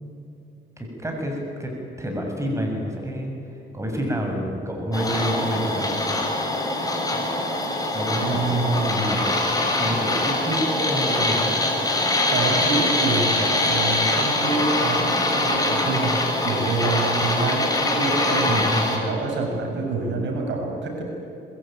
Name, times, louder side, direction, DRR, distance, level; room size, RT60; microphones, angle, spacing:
voice 1, 0.8-1.7 2.0-3.3 3.7-6.0 7.9-9.3 9.7-11.5 12.7-13.1 15.9-16.2 18.4-18.8, equal, 15° right, 1 dB, 7.3 m, -28 dB
sound 1, 4.9-19.0, left 2 dB, 20° left, 6.6 m, -23 dB
voice 2, 8.2-9.1 12.3-21.0, right 3 dB, 65° right, 1 dB, 6.9 m, -27 dB
26.0 x 22.0 x 9.3 m, 2.8 s
cardioid pair, 90°, 20 cm